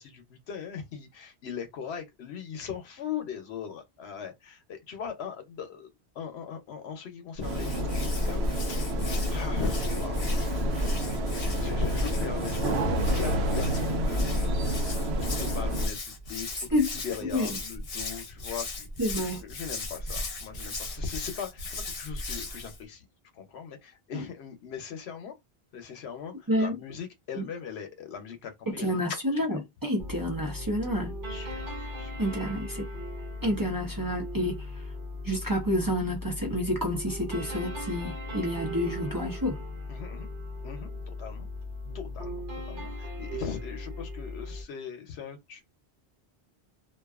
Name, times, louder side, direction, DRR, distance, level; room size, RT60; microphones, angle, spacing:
voice 1, 0.0-5.9 6.1-8.4 8.7-9.0 9.3-10.2 11.5-16.8 17.0-18.9 19.4-23.1 23.3-25.3 25.7-29.0 29.3-29.6 31.3-31.7 32.0-32.3 39.9-40.3 40.6-41.5 41.9-45.6, left 7 dB, 85° left, 1.0 m, -40 dB
Hands, 7.4-22.8, left 1 dB, 40° left, 0.6 m, -35 dB
sound 1, 7.4-15.9, equal, 85° right, 0.9 m, -29 dB
voice 2, 19.0-19.4 26.5-26.8 28.8-31.1 32.2-32.9 33.4-34.6 35.2-39.6, equal, 25° right, 0.6 m, -29 dB
sound 2, 30.0-44.6, left 1 dB, 55° right, 1.0 m, -38 dB
2.5 x 2.3 x 2.3 m
omnidirectional pair, 1.1 m